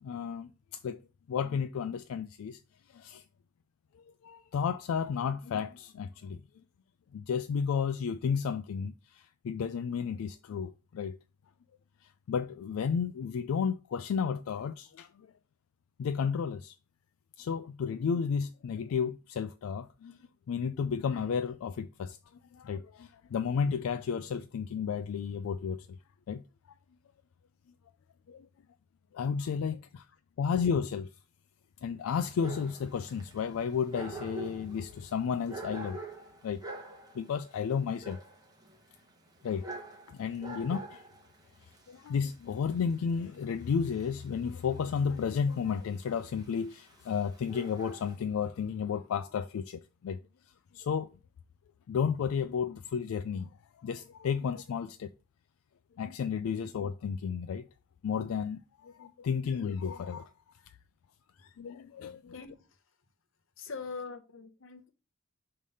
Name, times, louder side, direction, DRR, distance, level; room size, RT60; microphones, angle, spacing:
voice 1, 0.0-0.5 0.8-1.0 1.3-2.6 2.9-3.2 4.0-6.4 7.1-11.2 12.3-15.1 16.0-16.8 17.4-20.2 20.5-22.2 22.5-25.9 26.3-26.4 28.3-28.5 29.1-30.1 30.4-31.1 31.8-36.1 36.4-36.6 37.1-38.2 39.4-39.6 40.1-41.0 41.9-50.2 50.7-51.1 51.9-53.5 53.8-55.1 56.0-57.6 58.0-60.3 61.4-62.3, left 6 dB, 90° left, 0.3 m, -32 dB
Dog, 32.1-48.2, right 2 dB, 20° right, 0.8 m, -47 dB
voice 2, 62.3-62.8 63.6-64.9, left 4 dB, 70° left, 0.8 m, -43 dB
5.4 x 3.3 x 5.4 m
head